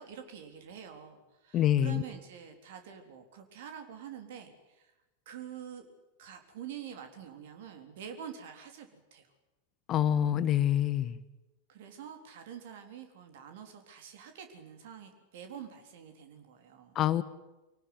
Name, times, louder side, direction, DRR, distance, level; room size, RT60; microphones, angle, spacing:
voice 1, 0.0-4.9 5.3-5.9 6.2-9.3 11.7-17.0, right 8 dB, 55° right, 6 dB, 3.6 m, -46 dB
voice 2, 1.5-2.0 9.9-11.2 16.9-17.2, left 11 dB, 30° left, 15 dB, 1.1 m, -26 dB
25.0 x 18.5 x 9.5 m, 1.1 s
figure-of-eight pair, 90°, 0 cm